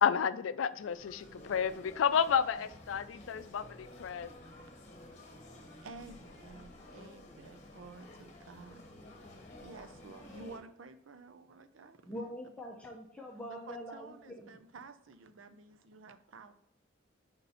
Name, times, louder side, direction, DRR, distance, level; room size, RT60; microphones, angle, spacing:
voice 1, 0.0-4.3, left 7 dB, 85° left, 14 dB, 0.4 m, -31 dB
sound 1, 0.7-10.6, left 1 dB, 35° left, 1.1 m, -52 dB
voice 2, 5.8-8.8 9.6-12.6 13.5-16.5, right 4 dB, 80° right, 9 dB, 0.6 m, -52 dB
voice 3, 12.1-14.4, equal, 5° left, -2 dB, 0.6 m, -44 dB
5.2 x 4.2 x 5.5 m, 0.75 s
head